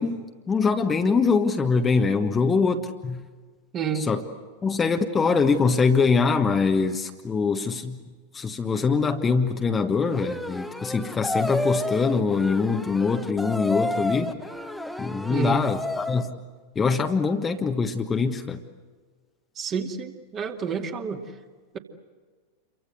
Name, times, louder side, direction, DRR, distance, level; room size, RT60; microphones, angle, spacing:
voice 1, 0.0-3.2 3.9-4.2 4.6-8.0 8.3-14.4 15.0-16.3 16.7-18.6, left 4 dB, 20° left, 6 dB, 1.4 m, -23 dB
voice 2, 3.7-4.1 15.3-15.6 19.6-21.2, right 6 dB, 30° right, 4 dB, 2.4 m, -29 dB
sound 1, 10.1-16.3, left 1 dB, ahead, 1.4 m, -31 dB
28.5 x 24.0 x 8.0 m, 1.4 s
figure-of-eight pair, 90°, 0 cm